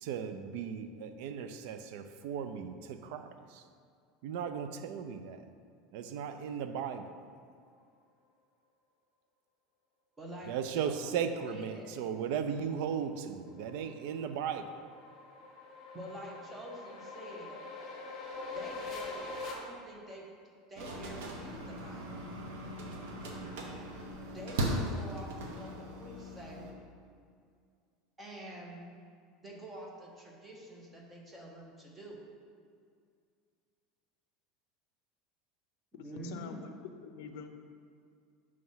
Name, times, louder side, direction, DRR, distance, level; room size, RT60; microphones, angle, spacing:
voice 1, 0.0-3.7 4.2-5.5 5.9-7.2 10.4-14.9, right 7 dB, 60° right, 9 dB, 0.4 m, -37 dB
voice 2, 10.2-10.6 10.8-11.0 11.5-11.9 15.9-17.6 18.5-20.3 20.7-22.2 24.3-25.7 26.0-26.7 28.2-28.8 29.4-32.2 35.9-36.6, right 1 dB, 10° right, -2 dB, 0.8 m, -47 dB
sound 1, 12.9-19.5, left 3 dB, 30° left, 0.9 m, -44 dB
sound 2, 20.7-26.7, right 1 dB, 80° right, 0.9 m, -38 dB
voice 3, 35.9-36.7 37.0-37.5, left 6 dB, 70° left, 6 dB, 0.5 m, -45 dB
5.8 x 3.2 x 5.5 m, 2.2 s
cardioid pair, 170°, 0 cm